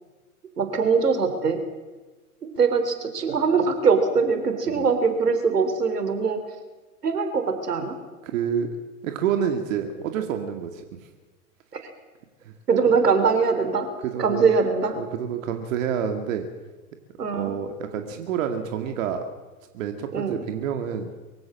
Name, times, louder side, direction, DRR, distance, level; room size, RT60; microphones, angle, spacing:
voice 1, 0.6-1.6 2.4-6.4 7.0-8.0 11.7-11.9 12.7-13.9 14.2-15.0 17.2-17.5 20.1-20.4, right 5 dB, 85° right, 8 dB, 3.6 m, -22 dB
voice 2, 8.2-8.7 9.0-10.8 12.4-12.5 14.0-14.5 15.0-16.5 17.3-19.2 19.7-21.1, right 8 dB, 55° right, 6 dB, 2.3 m, -28 dB
24.0 x 15.5 x 7.6 m, 1.3 s
hypercardioid pair, 115°, 46 cm